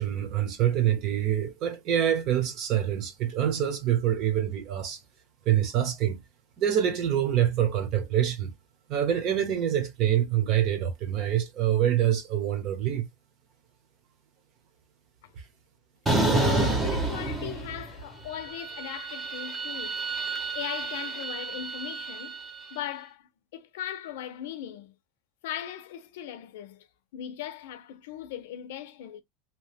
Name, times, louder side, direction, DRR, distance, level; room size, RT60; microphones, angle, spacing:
voice 1, 0.0-5.0 5.4-6.2 6.6-8.5 8.9-13.1, right 10 dB, 45° right, 0.8 m, -26 dB
sound 1, 16.1-18.0 18.3-22.6, right 2 dB, 10° right, 0.8 m, -29 dB
voice 2, 16.2-20.0 20.5-22.4 22.7-25.0 25.4-26.9 27.1-29.2, left 10 dB, 85° left, 0.6 m, -38 dB
2.9 x 2.2 x 3.3 m
supercardioid pair, 160°, 0 cm